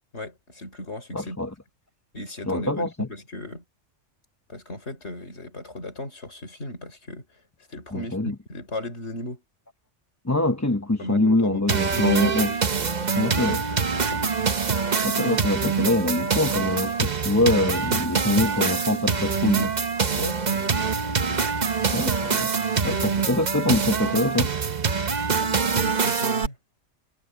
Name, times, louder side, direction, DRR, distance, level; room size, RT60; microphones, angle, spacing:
voice 1, 0.1-1.4 2.1-3.6 4.5-7.3 7.7-9.4 11.0-14.3 20.1-21.9 22.8-23.2 25.4-26.6, left 1 dB, 60° left, 4.8 m, -37 dB
voice 2, 1.1-1.5 2.5-3.1 7.9-8.3 10.2-12.5 13.2-13.6 15.0-19.7 21.9-22.5 22.8-24.5, left 2 dB, 15° left, 1.0 m, -24 dB
sound 1, 11.7-26.5, right 5 dB, 35° right, 1.0 m, -25 dB
omnidirectional pair, 1.3 m